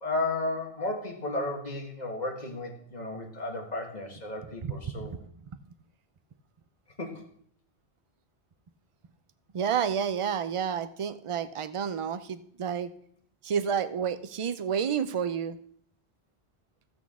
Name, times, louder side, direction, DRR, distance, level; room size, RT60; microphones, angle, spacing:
voice 1, 0.0-5.1 7.0-7.2, left 2 dB, 40° left, 2 dB, 1.6 m, -33 dB
voice 2, 9.5-12.9 13.4-15.6, right 7 dB, 45° right, 12 dB, 0.4 m, -30 dB
13.5 x 8.3 x 3.6 m, 0.63 s
omnidirectional pair, 1.1 m